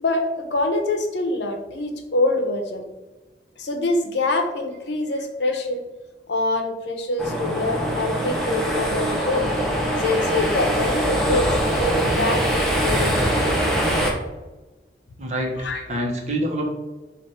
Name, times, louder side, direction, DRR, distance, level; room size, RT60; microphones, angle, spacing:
voice 1, 0.0-2.9 3.6-5.8 6.3-9.5 10.0-13.5 15.6-16.0, left 2 dB, 85° left, 5 dB, 0.7 m, -25 dB
sound 1, 7.2-14.1, right 1 dB, 5° left, 0.6 m, -23 dB
voice 2, 15.2-16.7, right 1 dB, 40° right, -1 dB, 0.9 m, -26 dB
4.9 x 2.5 x 4.2 m, 1.1 s
head